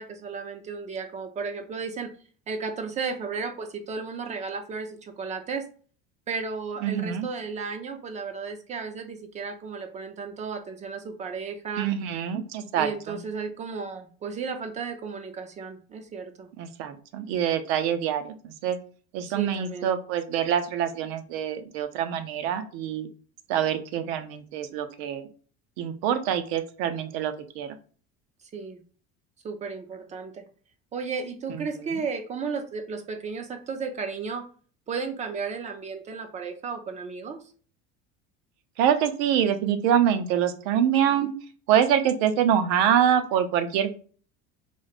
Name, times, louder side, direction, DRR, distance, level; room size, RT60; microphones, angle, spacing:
voice 1, 0.0-2.1 2.5-5.7 6.3-11.9 12.7-16.5 19.3-19.9 28.5-28.8 29.4-30.4 30.9-34.4 34.9-37.4, right 5 dB, 25° right, 7 dB, 0.4 m, -34 dB
voice 2, 6.8-7.3 11.8-13.2 16.6-18.8 19.1-23.1 23.5-25.3 25.8-27.8 31.9-32.0 38.8-41.4 41.7-43.9, right 9 dB, 75° right, 9 dB, 0.6 m, -25 dB
3.1 x 2.1 x 4.0 m, 0.42 s
cardioid pair, 135°, 30 cm